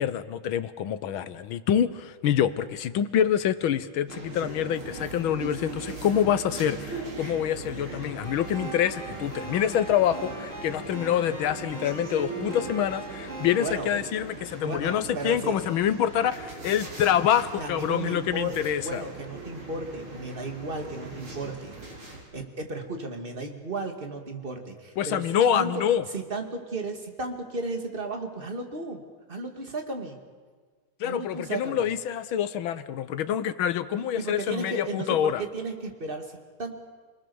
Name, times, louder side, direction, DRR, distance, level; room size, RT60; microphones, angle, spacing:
voice 1, 0.0-19.0 25.0-26.0 31.0-35.4, left 9 dB, 75° left, 13 dB, 1.7 m, -26 dB
sound 1, 4.1-22.2, right 2 dB, 80° right, 5.2 m, -40 dB
sound 2, 8.2-13.7, right 2 dB, 15° left, 7.2 m, -40 dB
voice 2, 13.6-13.9 14.6-15.5 17.6-18.6 18.8-21.8 22.3-25.7 26.1-29.0 29.3-30.2 31.0-31.9 34.2-36.7, right 2 dB, 25° right, 4 dB, 2.3 m, -34 dB
28.5 x 20.0 x 7.0 m, 1.5 s
omnidirectional pair, 2.3 m